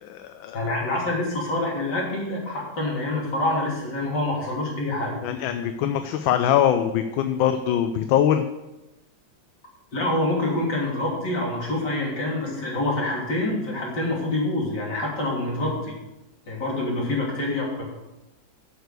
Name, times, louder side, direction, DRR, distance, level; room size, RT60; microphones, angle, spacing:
voice 1, 0.0-0.7 5.2-8.4 17.0-17.1, left 10 dB, 80° left, 8 dB, 1.4 m, -23 dB
voice 2, 0.5-5.2 9.9-15.9 16.5-17.9, left 2 dB, 60° left, -4 dB, 3.8 m, -26 dB
8.0 x 6.7 x 8.2 m, 0.97 s
omnidirectional pair, 2.1 m